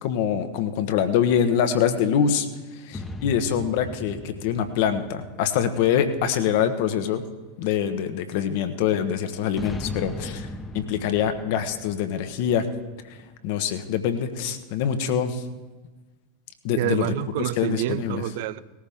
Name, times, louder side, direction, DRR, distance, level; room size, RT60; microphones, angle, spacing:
voice 1, 0.0-2.5 2.7-7.2 7.6-10.5 10.7-12.7 13.1-13.2 13.4-15.4 16.6-17.1 17.6-18.2, left 8 dB, 55° left, 9 dB, 1.3 m, -24 dB
sound 1, 2.9-6.6 9.5-13.3, left 2 dB, 15° left, 1.1 m, -38 dB
voice 2, 16.8-18.6, right 15 dB, 60° right, 16 dB, 0.5 m, -28 dB
19.5 x 14.5 x 3.7 m, 1.3 s
figure-of-eight pair, 85°, 0 cm